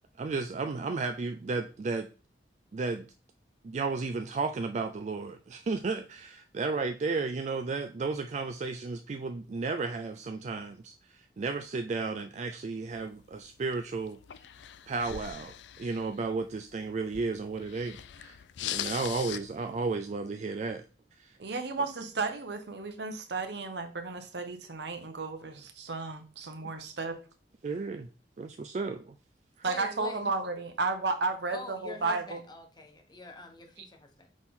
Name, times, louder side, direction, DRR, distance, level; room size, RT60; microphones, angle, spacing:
voice 1, 0.2-2.1 2.7-3.1 3.6-10.9 11.4-14.2 14.9-15.5 15.8-18.4 18.7-20.8 21.2-21.3 26.6-26.9 27.6-28.1 28.4-29.1, right 4 dB, 40° right, 0.3 m, -33 dB
sound 1, 12.9-19.9, left 11 dB, 85° left, 0.4 m, -42 dB
voice 2, 21.4-27.2 29.6-32.4, right 3 dB, 75° right, 0.9 m, -33 dB
voice 3, 29.6-30.3 31.5-34.3, left 2 dB, 25° left, 1.0 m, -45 dB
6.1 x 4.3 x 3.7 m
head